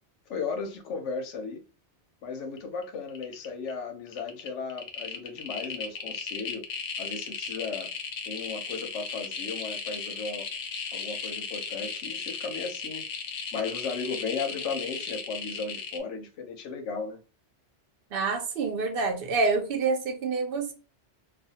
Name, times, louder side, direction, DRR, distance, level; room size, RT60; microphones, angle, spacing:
voice 1, 0.3-1.6 2.2-6.6 7.0-7.9 8.3-10.5 10.9-13.0 13.5-17.2, left 5 dB, 90° left, 0.9 m, -35 dB
sound 1, 2.6-2.8 3.1-3.7 4.1-16.0, left 5 dB, 60° left, 0.7 m, -36 dB
voice 2, 18.1-20.7, right 4 dB, 60° right, 0.8 m, -27 dB
2.4 x 2.2 x 2.7 m
omnidirectional pair, 1.2 m